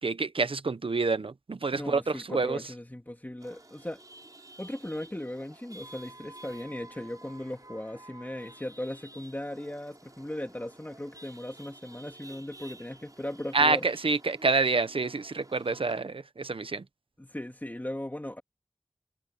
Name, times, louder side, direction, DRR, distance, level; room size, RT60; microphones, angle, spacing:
voice 1, 0.0-2.7 13.5-16.9, right 3 dB, 85° right, 1.0 m, -27 dB
voice 2, 1.7-4.0 4.6-13.8 17.2-18.4, left 1 dB, 20° left, 2.7 m, -38 dB
Chatter / Vehicle horn car horn honking / Traffic noise roadway noise, 3.4-16.0, right 2 dB, 40° right, 7.1 m, -52 dB
wide cardioid pair, 55°, 9 cm